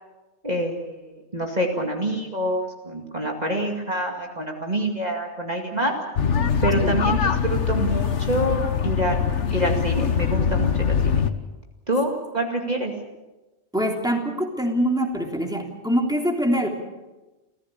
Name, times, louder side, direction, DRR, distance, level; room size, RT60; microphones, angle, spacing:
voice 1, 0.4-5.9 6.6-11.2 11.9-12.9, right 1 dB, 35° right, 1 dB, 2.4 m, -26 dB
sound 1, 6.2-11.3, left 7 dB, 90° left, 1.5 m, -23 dB
voice 2, 13.7-16.7, equal, 5° right, 2 dB, 3.3 m, -24 dB
29.5 x 15.5 x 8.5 m, 1.1 s
omnidirectional pair, 1.2 m